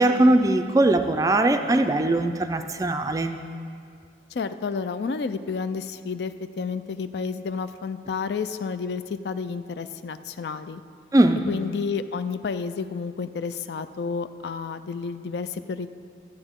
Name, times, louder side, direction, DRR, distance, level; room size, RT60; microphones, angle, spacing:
voice 1, 0.0-3.4 11.1-11.4, right 2 dB, 20° right, 7 dB, 0.4 m, -20 dB
voice 2, 4.3-10.8 11.5-15.9, left 5 dB, 65° left, 11 dB, 0.4 m, -30 dB
13.0 x 8.8 x 3.7 m, 2.3 s
head